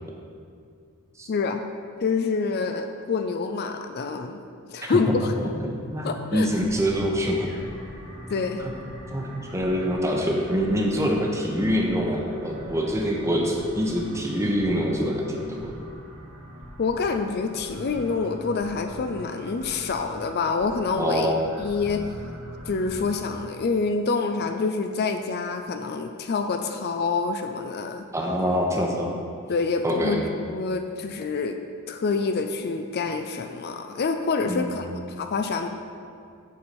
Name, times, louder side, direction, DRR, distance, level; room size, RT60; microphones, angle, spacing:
voice 1, 1.3-1.6 2.0-4.4 4.7-5.3 6.0-6.5 8.3-8.6 16.8-21.3 21.6-22.0 22.7-28.0 29.5-30.2 30.5-31.6 31.9-34.9 35.2-35.7, left 4 dB, 45° left, 6 dB, 0.4 m, -27 dB
voice 2, 5.6-7.5 8.6-8.7 9.1-15.7 21.0-21.4 28.1-29.1 29.8-30.2 34.5-34.8, equal, 15° right, 0 dB, 0.9 m, -25 dB
sound 1, 6.3-23.4, equal, 90° right, 1.9 m, -42 dB
8.2 x 4.4 x 6.9 m, 2.3 s
head